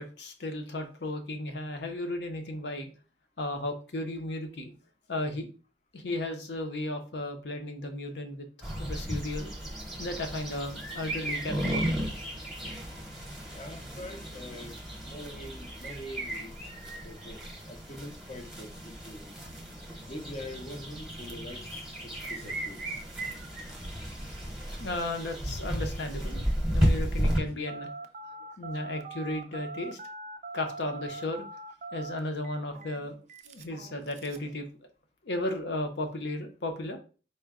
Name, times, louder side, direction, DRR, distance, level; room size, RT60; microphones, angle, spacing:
voice 1, 0.0-2.9 3.4-4.7 5.1-5.5 5.9-8.5 8.8-9.5 10.0-12.0 24.8-27.9 28.2-30.0 30.5-31.4 31.9-33.2 33.5-34.7 35.2-37.0, left 1 dB, 70° left, 0.7 m, -35 dB
sound 1, 8.6-27.4, equal, ahead, 0.9 m, -34 dB
voice 2, 13.5-19.4 20.1-23.0 27.4-27.6, left 1 dB, 35° left, 0.5 m, -44 dB
Telephone, 27.7-34.5, right 3 dB, 40° right, 0.3 m, -42 dB
4.3 x 2.2 x 3.5 m
head